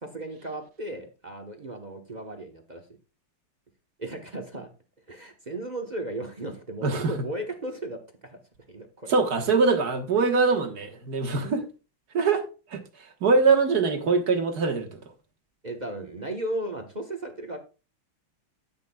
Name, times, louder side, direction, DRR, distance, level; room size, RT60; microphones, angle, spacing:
voice 1, 0.0-2.9 4.0-4.7 5.1-8.4 8.7-9.1 15.6-17.6, right 1 dB, 30° right, 0.9 m, -35 dB
voice 2, 6.8-7.1 9.1-11.6 12.1-12.4 12.7-15.0, right 4 dB, 50° right, 1.8 m, -23 dB
13.0 x 9.1 x 2.3 m
omnidirectional pair, 2.3 m